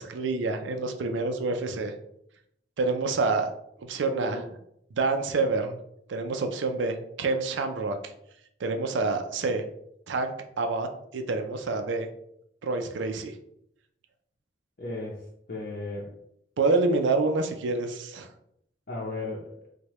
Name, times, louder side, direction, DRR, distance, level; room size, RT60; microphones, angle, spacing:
voice 1, 0.0-1.9 2.8-3.5 3.8-4.4 4.9-5.8 6.1-8.0 8.6-9.6 10.1-10.9 11.1-12.1 12.6-13.3 16.6-18.3, right 3 dB, 80° right, 6 dB, 0.4 m, -27 dB
voice 2, 4.0-4.4 14.8-15.2 15.5-16.1 18.9-19.5, left 2 dB, 55° left, -4 dB, 0.7 m, -35 dB
4.6 x 2.2 x 3.0 m, 0.75 s
head